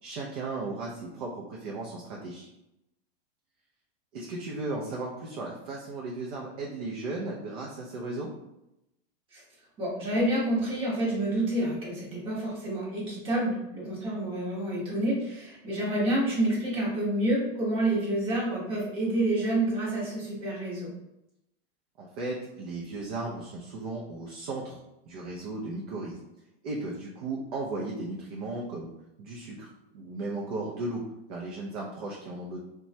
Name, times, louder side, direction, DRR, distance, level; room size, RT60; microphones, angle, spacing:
voice 1, 0.0-2.5 4.1-8.3 22.0-24.8 25.1-26.2 26.6-28.9 29.2-31.0 31.3-32.6, right 2 dB, 40° right, -2 dB, 0.4 m, -36 dB
voice 2, 9.8-20.9, right 1 dB, 15° right, -5 dB, 0.8 m, -28 dB
2.9 x 2.2 x 2.6 m, 0.87 s
supercardioid pair, 165°, 31 cm